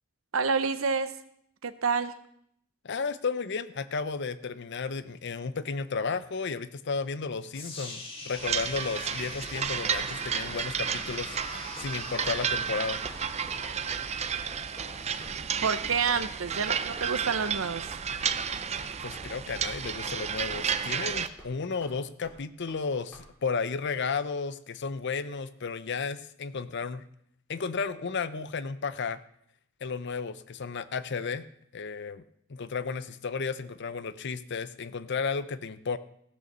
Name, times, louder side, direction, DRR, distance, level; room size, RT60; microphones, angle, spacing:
voice 1, 0.3-1.1 1.6-2.1 15.6-17.9, right 5 dB, 70° right, 12 dB, 0.8 m, -28 dB
voice 2, 2.8-13.0 19.0-27.0 27.5-29.2 29.8-31.4 31.7-32.2 32.5-36.0, left 5 dB, 55° left, 14 dB, 0.6 m, -33 dB
sound 1, 7.5-15.6, left 3 dB, 25° left, 1.8 m, -45 dB
sound 2, 8.4-21.3, right 7 dB, 30° right, 0.5 m, -32 dB
sound 3, 9.5-10.1 10.4-10.6 10.9-11.1 11.3-11.5 11.8-11.9 12.2-12.3 12.6-12.8 13.1-13.2 13.5-13.6 13.9-14.1 14.3-14.5 14.8-14.9 15.2-15.3 15.6-15.8 16.1-16.2 16.5-16.6 17.0-17.1 17.4-17.6 17.8-18.0 18.3-18.4 18.7-18.9 19.2-19.3 19.6-20.2 20.5-20.7 20.9-21.0 21.4-21.5 21.8-21.9 22.2-22.4 22.7-22.8 23.1-23.2, equal, 10° left, 3.8 m, -49 dB
15.5 x 6.5 x 6.8 m, 0.70 s
head